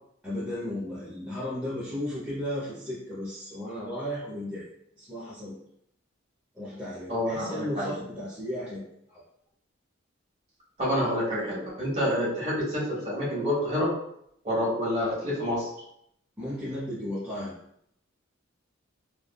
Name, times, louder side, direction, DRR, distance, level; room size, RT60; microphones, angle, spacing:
voice 1, 0.2-4.7 5.0-5.6 6.5-9.2 16.4-17.5, left 1 dB, 10° right, -10 dB, 0.6 m, -35 dB
voice 2, 7.1-7.9 10.8-13.9 14.4-15.7, equal, 35° right, -6 dB, 1.2 m, -28 dB
3.3 x 2.1 x 2.2 m, 0.73 s
head